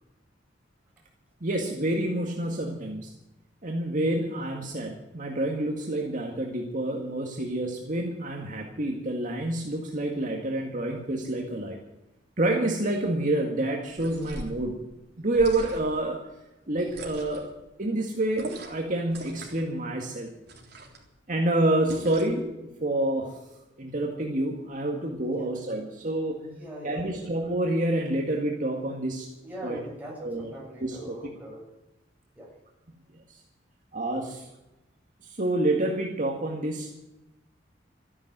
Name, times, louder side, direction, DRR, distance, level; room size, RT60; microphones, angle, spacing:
voice 1, 1.4-3.1 3.6-11.8 12.4-14.8 15.2-16.2 16.7-17.5 17.8-20.3 21.3-23.4 23.8-26.4 26.8-29.3 29.6-29.8 30.2-30.5 30.8-31.1 33.3-33.4 33.9-34.4 35.2-36.9, right 1 dB, 45° right, 0 dB, 2.0 m, -28 dB
sound 1, 13.9-14.6 15.3-16.0 16.9-17.5 18.3-18.8 19.1-19.7 20.5-21.0 21.9-22.4, right 1 dB, 60° right, 3.7 m, -40 dB
voice 2, 25.2-25.5 26.4-27.2 29.4-31.6 32.4-32.5 34.2-34.5, equal, 10° right, -4 dB, 6.9 m, -42 dB
14.0 x 11.0 x 9.4 m, 0.94 s
head